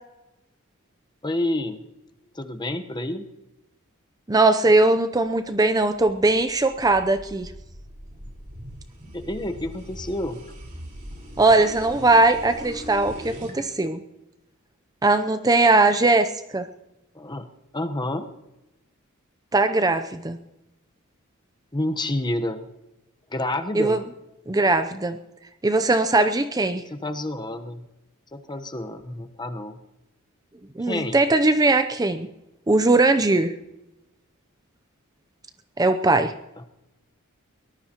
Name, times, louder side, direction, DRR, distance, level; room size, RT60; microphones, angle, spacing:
voice 1, 1.2-1.8 2.3-3.3 9.1-10.4 17.1-17.5 17.7-18.3 21.7-22.6 23.3-24.0 26.9-27.9 28.3-29.8 30.8-31.2, left 1 dB, 20° left, 7 dB, 1.0 m, -29 dB
voice 2, 4.3-7.5 11.4-14.0 15.0-16.3 16.5-16.7 19.5-20.4 23.7-24.0 24.5-25.2 25.6-26.8 30.8-32.3 32.7-33.5 35.8-36.3, right 2 dB, 15° right, 9 dB, 0.6 m, -20 dB
sound 1, 5.6-13.6, equal, 40° right, 4.4 m, -41 dB
23.0 x 19.0 x 3.0 m, 0.96 s
head